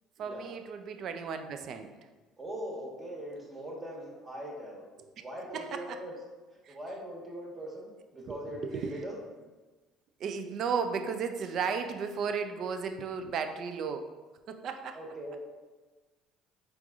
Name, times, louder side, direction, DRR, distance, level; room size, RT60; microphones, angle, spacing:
voice 1, 0.2-1.9 5.5-6.0 6.7-6.8 8.3-8.4 8.6-8.9 10.2-14.1 14.5-15.0, right 6 dB, 55° right, 8 dB, 0.4 m, -34 dB
voice 2, 2.4-4.8 5.2-6.1 6.7-9.2 14.9-15.4, equal, 30° right, -3 dB, 1.3 m, -41 dB
4.6 x 3.5 x 2.5 m, 1.3 s
hypercardioid pair, 65°, 0 cm